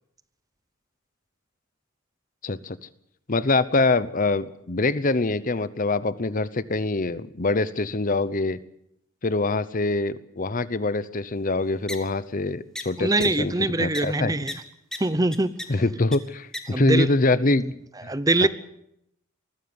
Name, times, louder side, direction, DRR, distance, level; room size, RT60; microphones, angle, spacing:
voice 1, 2.4-2.8 3.3-8.6 9.2-13.5 13.8-14.3 15.7-17.7 18.0-18.1 18.4-18.5, left 2 dB, 40° left, 0.8 m, -24 dB
sound 1, 11.9-12.0 12.8-12.9 13.2-13.3 13.9-14.0 14.5-14.6 14.9-15.0 15.3-15.6 16.1-16.2 16.5-16.6, left 1 dB, 5° left, 2.0 m, -32 dB
voice 2, 13.0-14.5 15.0-15.5 16.7-17.1 17.6-17.7 18.1-18.5, right 2 dB, 15° right, 0.7 m, -23 dB
20.0 x 15.0 x 9.5 m
head